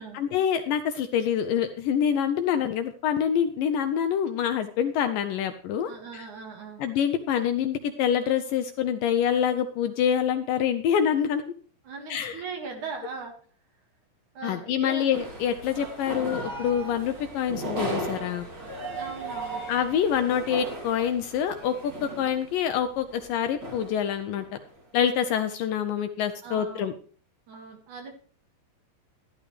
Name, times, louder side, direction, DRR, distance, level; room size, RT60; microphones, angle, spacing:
voice 1, 0.1-6.3 6.8-11.4 12.1-12.4 14.4-18.5 19.7-24.5 24.9-26.9, left 8 dB, 80° left, 8 dB, 2.1 m, -26 dB
voice 2, 5.9-6.8 11.8-13.3 14.3-15.1 18.9-19.6 26.4-26.8 27.5-28.1, right 4 dB, 55° right, 2 dB, 3.1 m, -39 dB
sound 1, 15.1-24.0 24.4-24.5 24.8-25.0, right 2 dB, 30° right, 3.1 m, -36 dB
12.5 x 12.0 x 3.3 m, 0.43 s
omnidirectional pair, 4.4 m